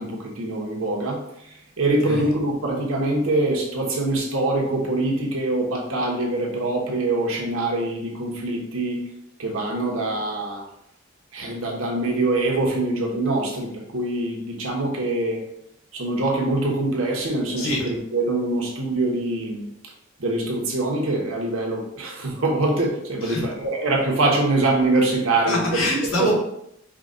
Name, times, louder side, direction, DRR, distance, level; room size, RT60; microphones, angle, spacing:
voice 1, 0.0-1.5 1.8-9.0 9.4-10.6 11.3-15.4 15.9-19.7 20.2-25.7 26.2-26.3, right 2 dB, 90° right, -1 dB, 1.1 m, -24 dB
voice 2, 17.6-17.9 23.2-23.5 25.3-26.3, left 1 dB, 85° left, -1 dB, 1.2 m, -25 dB
4.9 x 2.3 x 3.8 m, 0.78 s
head